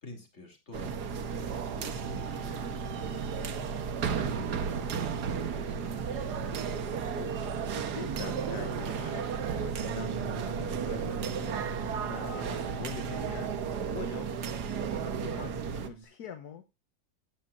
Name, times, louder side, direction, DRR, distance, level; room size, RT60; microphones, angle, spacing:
voice 1, 0.0-2.7 3.6-6.5, left 3 dB, 35° left, 4 dB, 2.9 m, -49 dB
sound 1, 0.7-15.9, right 6 dB, 60° right, 1.5 m, -33 dB
voice 2, 7.0-11.8 12.1-13.5 13.9-14.4 15.0-16.7, left 7 dB, 60° left, 8 dB, 1.3 m, -44 dB
Bass guitar, 9.8-16.0, right 5 dB, 25° right, 1.4 m, -46 dB
15.5 x 9.1 x 2.5 m, 0.24 s
omnidirectional pair, 2.1 m